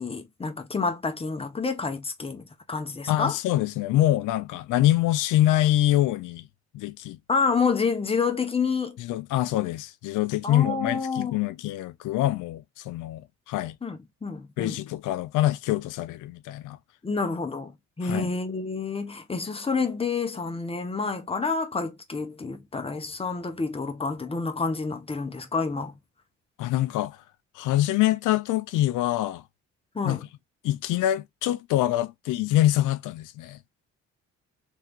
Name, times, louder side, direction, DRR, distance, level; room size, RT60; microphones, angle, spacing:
voice 1, 0.0-3.4 7.3-9.0 10.4-11.3 13.8-14.8 17.0-26.0 29.9-30.2, left 4 dB, 20° left, 1.0 m, -28 dB
voice 2, 3.1-6.5 6.7-7.2 9.1-13.8 14.6-16.8 18.0-18.3 26.6-27.2 27.6-29.4 30.0-30.2 30.6-33.6, left 14 dB, 90° left, 0.5 m, -25 dB
3.3 x 3.3 x 2.4 m
cardioid pair, 90°, 30 cm